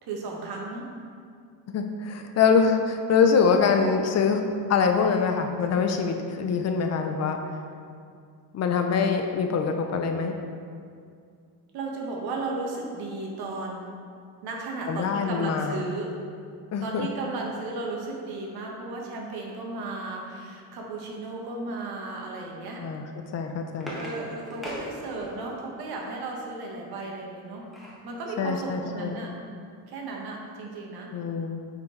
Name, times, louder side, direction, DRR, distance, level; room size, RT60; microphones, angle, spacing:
voice 1, 0.0-0.9 11.7-13.9 14.4-16.2 16.8-22.9 23.9-27.7 28.0-29.3 29.9-31.2, right 3 dB, 70° right, -1 dB, 1.4 m, -34 dB
voice 2, 1.7-4.4 4.7-7.4 8.5-10.3 14.9-15.8 16.7-17.1 22.8-23.0 23.3-23.9 28.4-29.2 31.1-31.6, left 5 dB, 45° left, 5 dB, 0.6 m, -24 dB
sound 1, 23.2-25.6 27.2-28.1 28.6-28.7 28.9-29.2, equal, ahead, 1.4 m, -40 dB
8.6 x 4.5 x 3.9 m, 2.3 s
cardioid pair, 140°, 38 cm